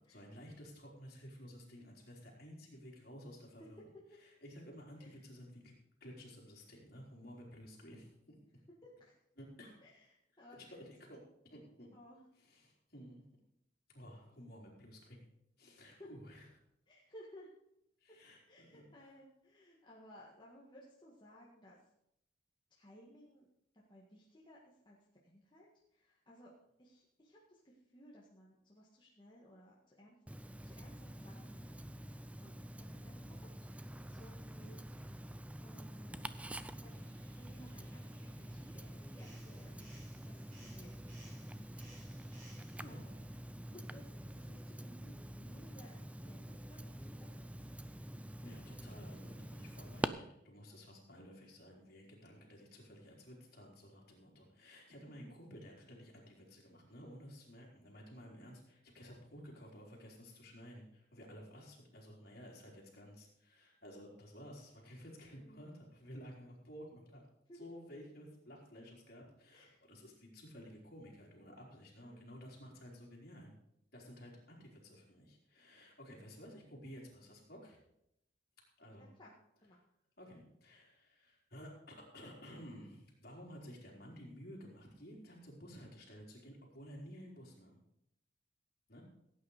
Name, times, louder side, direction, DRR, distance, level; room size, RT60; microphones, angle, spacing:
voice 1, 0.1-3.8 4.2-5.7 6.0-8.4 9.4-9.7 10.5-11.2 11.4-11.9 12.4-13.2 13.9-15.2 15.6-16.4 18.0-18.8 42.8-43.1 48.4-67.2 67.5-73.5 73.9-77.8 78.8-79.1 80.2-87.8 88.9-89.0, equal, 50° left, -2 dB, 4.2 m, -53 dB
voice 2, 8.8-9.1 9.8-10.8 11.9-12.3 15.8-16.1 16.9-17.5 18.5-21.8 22.7-23.5 23.7-25.0 25.2-26.5 26.8-30.2 30.6-33.3 34.1-39.7 40.2-41.4 42.9-43.1 43.6-47.6 55.0-55.4 65.3-65.6 67.5-67.7 69.5-69.8 72.0-72.3 79.0-79.3 79.6-79.8, equal, 25° left, -4 dB, 1.8 m, -59 dB
Tick-tock, 30.3-50.1, right 1 dB, 5° right, 0.4 m, -47 dB
sound 1, 36.9-43.4, right 1 dB, 45° right, 5.0 m, -63 dB
16.5 x 9.2 x 5.0 m, 0.79 s
head